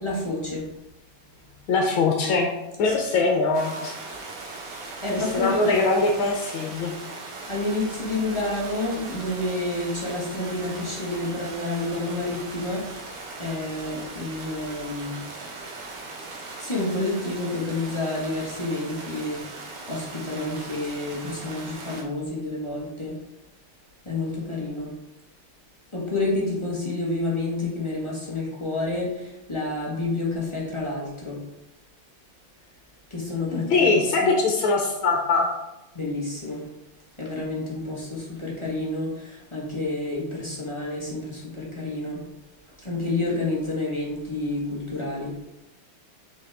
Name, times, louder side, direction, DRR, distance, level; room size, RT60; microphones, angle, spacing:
voice 1, 0.0-0.6 5.0-5.8 7.5-13.0 13.4-15.2 16.6-19.4 19.9-23.1 24.0-24.9 25.9-29.1 29.5-31.4 33.1-33.6 35.9-36.6 37.2-42.2 42.8-45.3, left 2 dB, 15° left, -5 dB, 1.2 m, -29 dB
voice 2, 1.7-2.5 2.8-3.9 5.1-6.9 33.5-35.5, left 3 dB, 70° left, 0 dB, 1.6 m, -22 dB
sound 1, 3.5-22.0, right 3 dB, 55° right, 1.6 m, -39 dB
6.2 x 5.4 x 3.5 m, 0.94 s
omnidirectional pair, 2.4 m